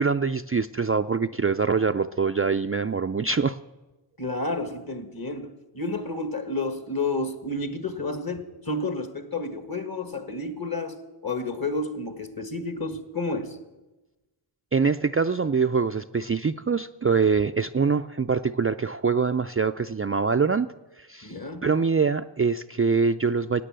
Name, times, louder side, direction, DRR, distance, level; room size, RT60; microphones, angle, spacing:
voice 1, 0.0-3.6 14.7-20.7 21.0-21.4 21.6-23.6, right 5 dB, 30° right, 8 dB, 0.4 m, -24 dB
voice 2, 4.2-13.6 21.2-21.7, left 2 dB, 45° left, 9 dB, 1.7 m, -31 dB
16.5 x 9.4 x 7.6 m, 1.1 s
wide cardioid pair, 45°, 50 cm